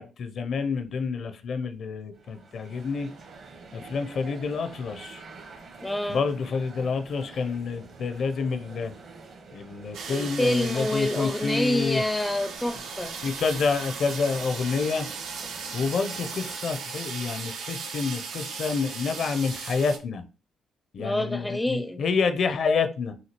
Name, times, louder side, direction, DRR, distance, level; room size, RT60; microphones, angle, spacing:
voice 1, 0.0-3.1 3.7-5.2 6.1-8.9 9.5-12.0 13.2-15.1 15.7-20.2 20.9-23.1, left 5 dB, 60° left, 0.5 m, -28 dB
sound 1, 2.1-16.6, right 4 dB, 60° right, 1.1 m, -47 dB
voice 2, 5.8-6.2 10.1-13.1 21.0-22.0, left 1 dB, 10° left, 0.4 m, -27 dB
sound 2, 9.9-20.0, right 5 dB, 80° right, 0.7 m, -37 dB
5.7 x 2.7 x 2.9 m
cardioid pair, 90°, 0 cm